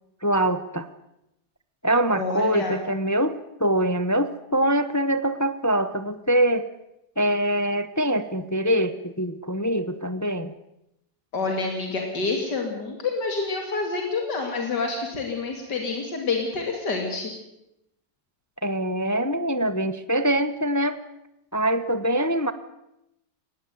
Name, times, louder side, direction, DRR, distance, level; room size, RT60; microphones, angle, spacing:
voice 1, 0.2-0.9 1.8-6.7 7.2-10.5 18.6-21.0 21.5-22.5, right 1 dB, 20° left, 12 dB, 0.4 m, -24 dB
voice 2, 2.1-2.8 11.3-17.3, left 4 dB, 80° left, 2 dB, 3.4 m, -28 dB
19.5 x 16.5 x 9.2 m, 0.86 s
omnidirectional pair, 1.8 m